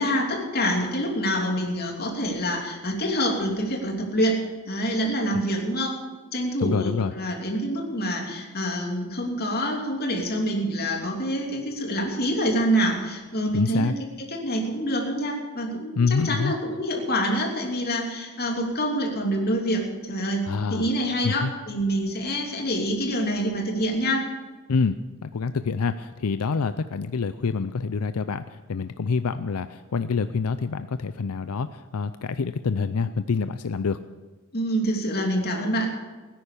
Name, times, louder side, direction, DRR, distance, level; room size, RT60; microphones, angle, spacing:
voice 1, 0.0-4.4 4.7-6.0 6.3-13.9 14.3-16.0 16.2-24.3 34.5-35.9, equal, 45° left, 1 dB, 3.0 m, -26 dB
voice 2, 6.6-7.1 13.5-13.9 16.0-16.5 20.4-20.9 21.2-21.5 24.7-34.0, left 5 dB, 85° left, 12 dB, 0.5 m, -26 dB
18.0 x 10.5 x 6.8 m, 1.3 s
head